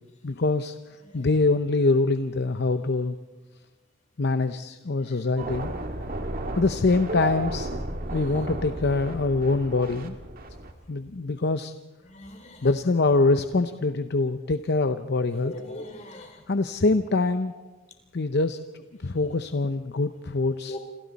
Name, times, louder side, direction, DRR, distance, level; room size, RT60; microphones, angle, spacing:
voice 1, 0.2-0.8 1.1-3.2 4.2-5.7 6.6-7.8 8.1-10.2 10.9-11.7 12.6-15.5 16.5-17.5 18.1-20.8, left 3 dB, 55° left, 10 dB, 0.7 m, -24 dB
sound 1, 5.4-10.7, right 2 dB, 45° right, 2.0 m, -33 dB
voice 2, 12.1-12.7 15.4-16.4 20.7-20.8, left 1 dB, 35° left, 4 dB, 3.6 m, -39 dB
28.0 x 27.5 x 4.1 m, 1.2 s
head